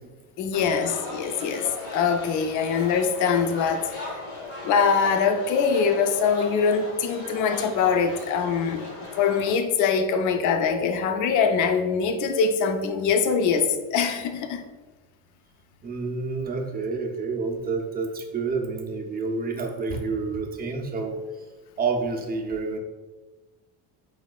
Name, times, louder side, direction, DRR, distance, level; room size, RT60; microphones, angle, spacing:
voice 1, 0.4-4.2 4.6-14.6, left 6 dB, 45° left, 0.5 m, -23 dB
sound 1, 0.5-9.5, left 3 dB, 90° left, 1.1 m, -37 dB
voice 2, 15.8-21.2 21.8-22.8, right 4 dB, 20° right, 0.5 m, -29 dB
4.2 x 3.2 x 2.3 m
supercardioid pair, 95°, 42 cm